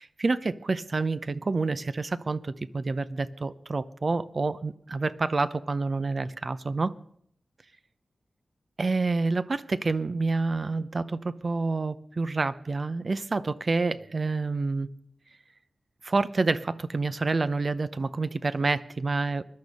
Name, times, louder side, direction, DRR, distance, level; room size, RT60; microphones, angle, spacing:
voice 1, 0.0-6.9 8.8-14.9 16.0-19.4, right 3 dB, 50° right, 14 dB, 0.7 m, -28 dB
21.0 x 12.0 x 5.4 m, 0.67 s
wide cardioid pair, 90°, 0 cm